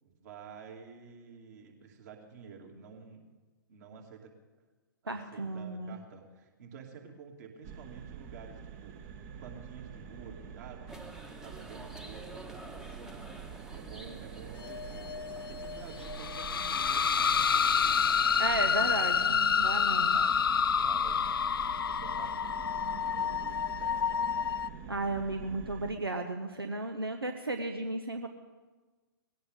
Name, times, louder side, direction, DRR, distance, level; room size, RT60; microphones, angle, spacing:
voice 1, 0.0-3.3 3.7-4.3 5.0-11.1 11.4-15.1 15.5-18.2 18.8-19.4 20.1-20.5 20.8-21.4 21.7-24.4, right 6 dB, 50° right, 2 dB, 2.7 m, -50 dB
voice 2, 5.1-6.0 18.4-20.2 24.9-28.3, right 2 dB, 85° right, 6 dB, 1.0 m, -34 dB
sound 1, 7.6-25.9, right 7 dB, 30° right, 1.1 m, -46 dB
sound 2, 10.9-19.1, right 1 dB, 5° right, 1.1 m, -50 dB
sound 3, 14.6-24.7, left 7 dB, 70° left, 0.4 m, -29 dB
19.5 x 17.0 x 3.7 m, 1.3 s
figure-of-eight pair, 115°, 12 cm